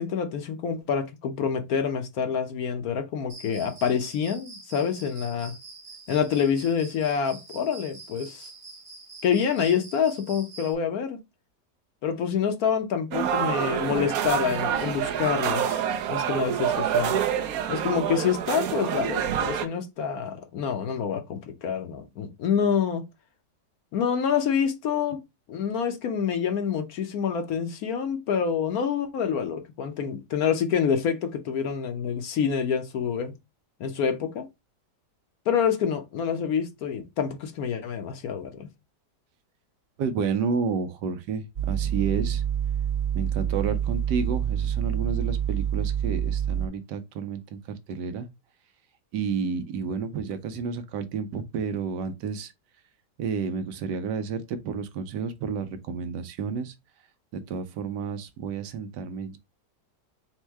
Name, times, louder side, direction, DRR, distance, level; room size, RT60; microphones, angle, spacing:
voice 1, 0.0-5.5 6.1-8.5 9.2-11.2 12.0-15.8 16.1-17.1 17.7-23.0 23.9-25.2 25.5-33.3 33.8-34.5 35.5-38.7, left 7 dB, 65° left, 1.1 m, -27 dB
Cricket, 3.3-10.7, right 3 dB, 30° right, 0.6 m, -46 dB
sound 1, 13.1-19.7, right 9 dB, 70° right, 1.0 m, -27 dB
voice 2, 40.0-42.4 43.1-48.3 49.1-52.5 53.2-56.7 57.3-59.4, right 5 dB, 85° right, 1.3 m, -31 dB
sound 2, 41.6-46.7, right 9 dB, 45° right, 1.1 m, -27 dB
4.4 x 2.2 x 4.5 m
omnidirectional pair, 1.8 m